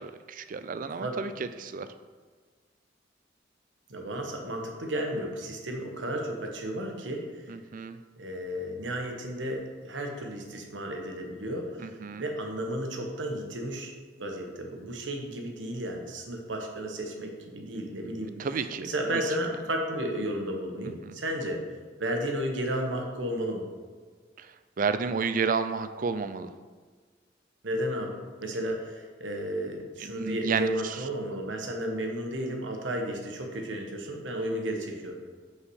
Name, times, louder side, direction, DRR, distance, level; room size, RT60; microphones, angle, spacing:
voice 1, 0.0-1.9 7.5-8.0 11.8-12.2 18.4-19.2 21.0-21.1 24.4-26.5 30.0-30.9, right 5 dB, 45° right, 11 dB, 0.4 m, -31 dB
voice 2, 3.9-7.3 8.2-11.9 12.2-13.9 14.2-18.4 18.8-21.6 22.0-23.6 27.6-35.1, right 1 dB, 90° right, 2 dB, 1.2 m, -33 dB
5.7 x 4.8 x 6.2 m, 1.5 s
head